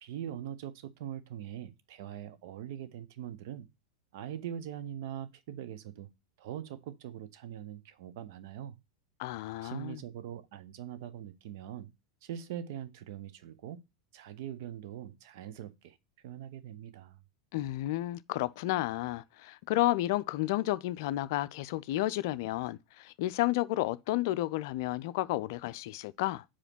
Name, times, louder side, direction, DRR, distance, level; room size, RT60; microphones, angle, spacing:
voice 1, 0.0-3.7 4.1-6.1 6.4-8.8 9.6-11.9 12.2-13.8 14.1-16.0 16.2-17.2, right 10 dB, 60° right, 0.8 m, -42 dB
voice 2, 9.2-10.0 17.5-26.4, left 16 dB, 55° left, 0.4 m, -31 dB
4.9 x 4.3 x 5.8 m
figure-of-eight pair, 90°, 2 cm